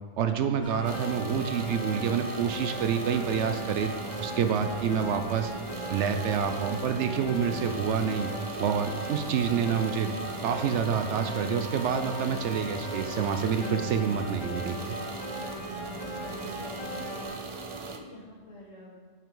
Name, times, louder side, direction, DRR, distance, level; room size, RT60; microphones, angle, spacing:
voice 1, 0.2-3.9 4.2-5.5 5.9-8.3 8.6-10.1 10.4-14.9, right 7 dB, 70° right, 8 dB, 0.8 m, -28 dB
sound 1, 0.6-17.3, equal, 80° left, 3.1 m, -38 dB
sound 2, 0.8-18.0, right 3 dB, 50° right, 0.3 m, -40 dB
sound 3, 2.2-10.1, left 2 dB, 20° left, 0.6 m, -51 dB
voice 2, 16.4-17.2 17.7-19.0, left 1 dB, 60° left, -6 dB, 2.4 m, -49 dB
9.4 x 5.7 x 3.8 m, 1.4 s
omnidirectional pair, 1.3 m